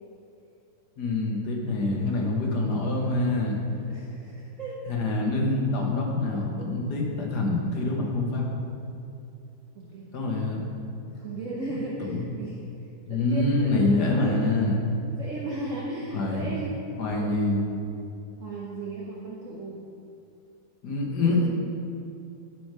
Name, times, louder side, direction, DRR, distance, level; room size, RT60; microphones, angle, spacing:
voice 1, 1.0-3.6 4.9-8.5 10.1-10.7 12.0-12.2 13.1-14.8 16.1-16.5 17.0-17.7 20.8-21.5, left 2 dB, 65° left, -1 dB, 1.7 m, -25 dB
voice 2, 3.9-4.8 9.7-10.1 11.1-14.6 15.1-16.7 17.1-17.3 18.4-19.8 21.2-21.5, right 2 dB, 55° right, -4 dB, 1.1 m, -36 dB
11.0 x 4.7 x 4.8 m, 2.6 s
omnidirectional pair, 1.9 m